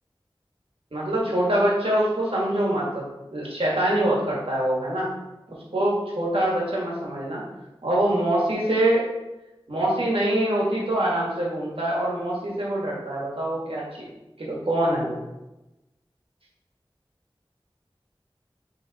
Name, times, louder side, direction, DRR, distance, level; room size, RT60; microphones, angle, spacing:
voice 1, 0.9-3.0 3.3-5.1 5.7-7.4 7.8-9.1 9.7-13.8 14.4-15.2, right 1 dB, 85° right, -5 dB, 1.7 m, -24 dB
6.2 x 3.8 x 4.1 m, 0.99 s
wide cardioid pair, 50°, 9 cm